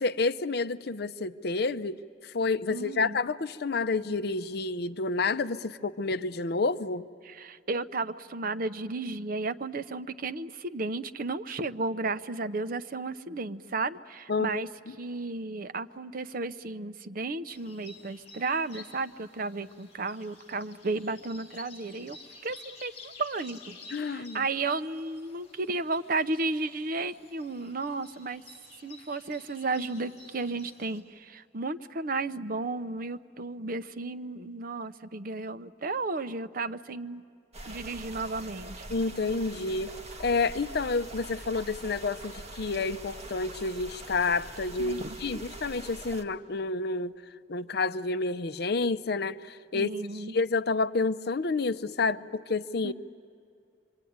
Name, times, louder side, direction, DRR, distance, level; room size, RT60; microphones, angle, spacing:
voice 1, 0.0-2.0 2.2-7.1 14.3-14.5 23.9-24.4 38.9-39.9 40.2-47.1 47.5-52.9, left 3 dB, 60° left, 12 dB, 0.7 m, -29 dB
voice 2, 2.7-3.2 7.2-14.7 15.0-22.2 22.4-23.8 24.0-28.4 28.8-37.2 37.7-38.8 44.8-45.3 49.7-50.3 52.8-52.9, right 3 dB, 50° right, 10 dB, 0.7 m, -33 dB
sound 1, 17.5-31.0, left 3 dB, 35° left, 4.6 m, -52 dB
sound 2, 37.5-46.2, right 2 dB, 35° right, 1.6 m, -43 dB
26.0 x 24.0 x 9.4 m, 2.4 s
head